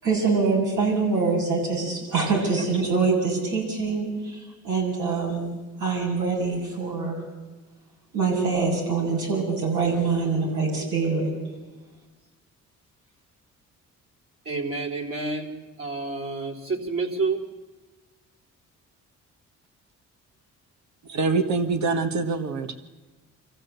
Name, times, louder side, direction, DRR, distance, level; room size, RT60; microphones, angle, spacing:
voice 1, 0.0-5.4 5.8-7.2 8.1-11.3, right 4 dB, 80° right, -1 dB, 7.4 m, -24 dB
voice 2, 14.5-15.5 15.8-17.4, right 3 dB, 50° right, 2 dB, 3.8 m, -29 dB
voice 3, 21.0-22.8, right 4 dB, 65° right, 9 dB, 1.6 m, -25 dB
24.5 x 15.0 x 8.1 m, 1.2 s
cardioid pair, 90°, 30 cm